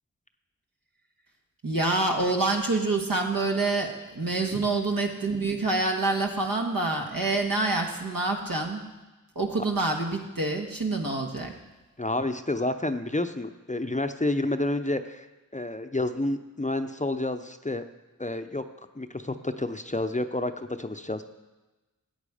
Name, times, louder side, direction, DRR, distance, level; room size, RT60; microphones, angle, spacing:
voice 1, 1.6-8.8 9.3-11.5, right 2 dB, 75° right, 1 dB, 1.6 m, -27 dB
voice 2, 12.0-15.3 15.5-17.8 18.2-18.6 18.9-21.2, left 2 dB, 20° left, 8 dB, 0.7 m, -29 dB
13.5 x 8.5 x 5.0 m, 1.1 s
wide cardioid pair, 50°, 35 cm